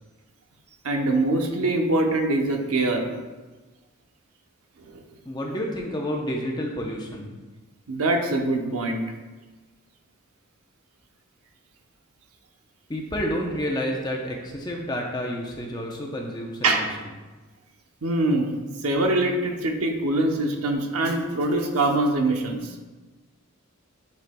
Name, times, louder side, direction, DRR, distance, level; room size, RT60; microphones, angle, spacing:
voice 1, 0.8-3.1 4.9-5.0 7.9-9.0 16.6-16.9 18.0-18.5 18.8-22.7, right 2 dB, 75° right, 3 dB, 0.8 m, -23 dB
voice 2, 5.3-7.3 12.9-16.9, equal, 20° left, 0 dB, 0.7 m, -29 dB
9.2 x 5.5 x 2.3 m, 1.2 s
head